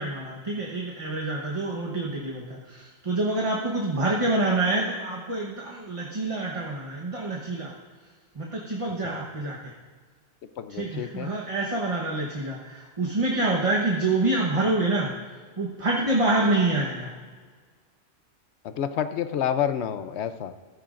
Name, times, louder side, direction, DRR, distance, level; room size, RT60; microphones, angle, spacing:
voice 1, 0.0-7.7 8.4-9.7 10.7-15.1 15.6-17.1, right 2 dB, 30° right, -2 dB, 1.2 m, -27 dB
voice 2, 10.6-11.3 18.6-20.5, left 9 dB, 85° left, 11 dB, 0.9 m, -29 dB
15.0 x 12.5 x 2.5 m, 1.5 s
omnidirectional pair, 1.1 m